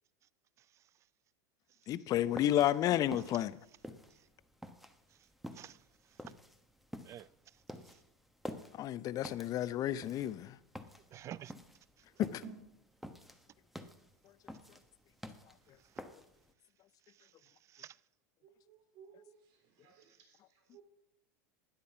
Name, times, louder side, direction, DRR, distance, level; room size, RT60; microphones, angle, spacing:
voice 1, 1.9-3.6 8.8-10.6 12.2-12.4, left 12 dB, 40° left, 0.6 m, -31 dB
sound 1, 2.1-16.5, equal, ahead, 1.1 m, -49 dB
voice 2, 11.1-11.5 15.8-15.9 17.1-18.0, right 11 dB, 35° right, 0.4 m, -50 dB
voice 3, 18.4-20.8, right 7 dB, 55° right, 3.5 m, -61 dB
12.0 x 9.8 x 5.7 m
hypercardioid pair, 100°, 9 cm